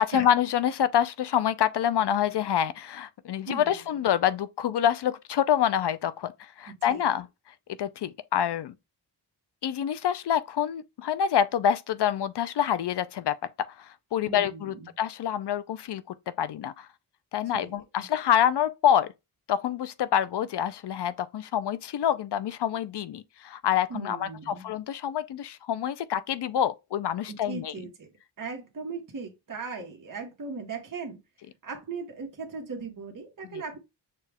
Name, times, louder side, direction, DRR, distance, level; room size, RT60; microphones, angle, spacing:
voice 1, 0.0-7.3 7.8-8.7 9.6-16.9 17.3-19.1 19.5-27.7, left 9 dB, 70° left, 0.5 m, -27 dB
voice 2, 3.5-4.0 6.7-7.1 14.2-14.9 17.4-18.1 23.9-24.7 27.3-28.1 28.4-31.2 31.6-33.8, right 4 dB, 45° right, 1.3 m, -38 dB
6.7 x 2.3 x 3.4 m
wide cardioid pair, 115°, 42 cm